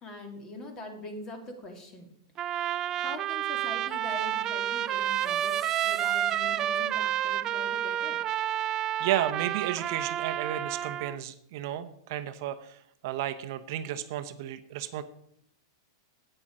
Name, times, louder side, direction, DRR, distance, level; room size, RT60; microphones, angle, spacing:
voice 1, 0.0-2.1 3.0-8.2, left 2 dB, 25° left, 5 dB, 2.2 m, -43 dB
Trumpet, 2.4-11.2, right 12 dB, 25° right, 0.3 m, -30 dB
sound 1, 4.9-7.3, right 2 dB, 5° left, 2.9 m, -51 dB
voice 2, 8.6-15.0, right 12 dB, 55° right, 9 dB, 0.8 m, -33 dB
9.8 x 9.0 x 4.9 m, 0.71 s
supercardioid pair, 145°, 2 cm